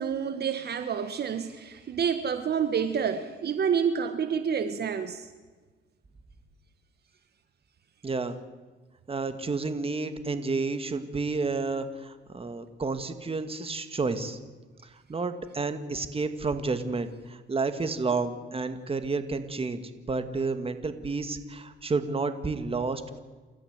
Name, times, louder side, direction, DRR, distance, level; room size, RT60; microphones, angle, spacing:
voice 1, 0.0-5.3, right 7 dB, 55° right, 9 dB, 1.5 m, -28 dB
voice 2, 8.0-8.4 9.1-14.4 15.1-19.8 20.1-23.2, right 4 dB, 30° right, 10 dB, 2.1 m, -30 dB
29.5 x 13.5 x 8.2 m, 1.3 s
cardioid pair, 90°, 20 cm